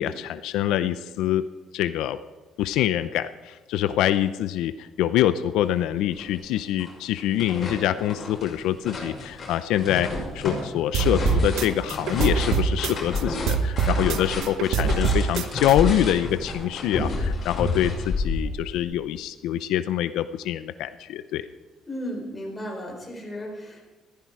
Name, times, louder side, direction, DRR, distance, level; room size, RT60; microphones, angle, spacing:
voice 1, 0.0-1.4 1.7-2.2 2.6-21.4, left 12 dB, 85° left, 12 dB, 0.6 m, -25 dB
sound 1, 5.7-5.8 6.2-6.9 7.2-18.8, left 2 dB, 30° left, 6.3 m, -30 dB
sound 2, 10.9-13.2 13.5-15.7, right 6 dB, 70° right, 1.0 m, -24 dB
voice 2, 21.9-23.8, equal, 15° left, -1 dB, 4.5 m, -35 dB
15.0 x 14.5 x 4.8 m, 1.3 s
cardioid pair, 145°, 0 cm